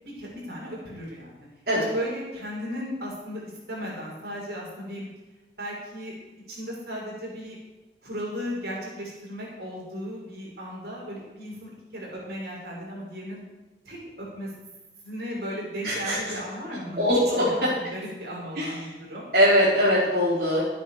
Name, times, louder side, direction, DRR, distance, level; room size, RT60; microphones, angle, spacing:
voice 1, 0.0-1.5 1.9-3.4 3.7-5.1 5.6-6.2 6.5-7.6 8.0-13.4 13.9-14.5 15.0-17.6 17.9-19.2, equal, 70° right, -3 dB, 5.8 m, -36 dB
voice 2, 15.8-16.3 17.0-17.7 18.5-18.7 19.3-20.6, equal, 55° right, -9 dB, 4.2 m, -22 dB
13.5 x 9.2 x 6.7 m, 1.1 s
head